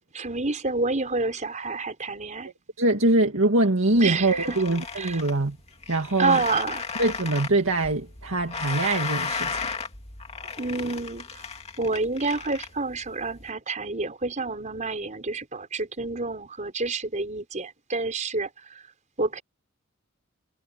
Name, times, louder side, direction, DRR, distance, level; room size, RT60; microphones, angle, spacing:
voice 1, 0.1-2.5 4.0-4.6 4.9-5.2 6.2-6.8 10.6-11.4 11.8-18.8 19.2-19.4, right 3 dB, 35° right, 5.1 m, -28 dB
voice 2, 2.8-5.6 5.9-6.4 7.0-9.7, right 2 dB, 75° right, 2.2 m, -23 dB
sound 1, 3.9-13.5, left 5 dB, 30° left, 2.4 m, -35 dB
head